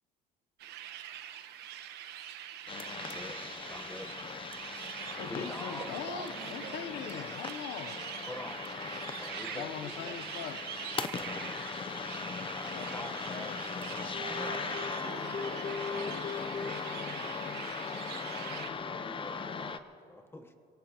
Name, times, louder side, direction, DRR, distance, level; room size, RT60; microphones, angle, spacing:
sound 1, 0.6-18.7, right 11 dB, 80° right, 1.0 m, -44 dB
sound 2, 2.7-19.8, left 5 dB, 30° left, 0.6 m, -39 dB
voice 1, 3.0-3.4 3.7-4.1 5.2-5.9 8.3-8.7 9.1-10.2 11.1-11.6 12.3-14.0 18.8-20.5, left 1 dB, 15° left, 7 dB, 1.1 m, -46 dB
voice 2, 5.2-8.1 9.5-10.6 12.6-13.6, left 8 dB, 85° left, 10 dB, 0.8 m, -42 dB
voice 3, 5.8-7.0 14.2-17.4, right 7 dB, 50° right, 7 dB, 1.3 m, -47 dB
23.5 x 18.0 x 2.9 m, 2.7 s
cardioid pair, 110°, 17 cm